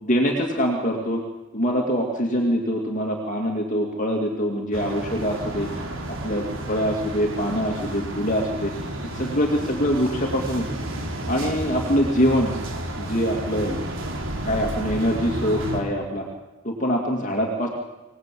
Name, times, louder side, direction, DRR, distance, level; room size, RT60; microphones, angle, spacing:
voice 1, 0.0-1.2 1.5-5.7 6.1-8.7 9.1-10.7 11.3-12.5 13.0-13.8 14.5-16.3 16.6-17.7, equal, 35° left, 1 dB, 2.5 m, -24 dB
sound 1, 4.7-15.8, right 1 dB, 70° right, 3.9 m, -31 dB
25.5 x 19.0 x 8.6 m, 1.1 s
head